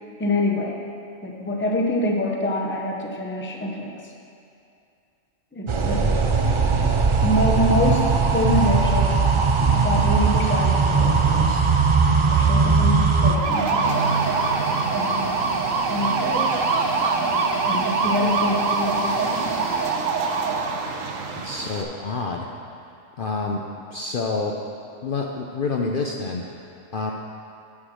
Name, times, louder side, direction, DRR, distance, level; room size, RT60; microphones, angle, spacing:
voice 1, 0.2-0.8 1.2-4.1 5.5-6.1 6.6-6.9 7.2-11.6 12.3-14.0 14.9-15.3 15.9-16.5 17.6-19.6, left 1 dB, 10° left, 1 dB, 0.6 m, -26 dB
sound 1, 5.7-13.4, right 4 dB, 50° right, 0.3 m, -19 dB
sound 2, 13.3-21.8, right 4 dB, 85° right, 1.1 m, -24 dB
sound 3, 13.8-19.9, left 1 dB, 25° left, 2.2 m, -35 dB
voice 2, 21.4-22.5 23.2-23.6 23.9-24.5 25.0-26.6 26.9-27.1, left 4 dB, 55° left, 0 dB, 0.7 m, -27 dB
9.7 x 5.8 x 6.3 m, 2.6 s
omnidirectional pair, 1.3 m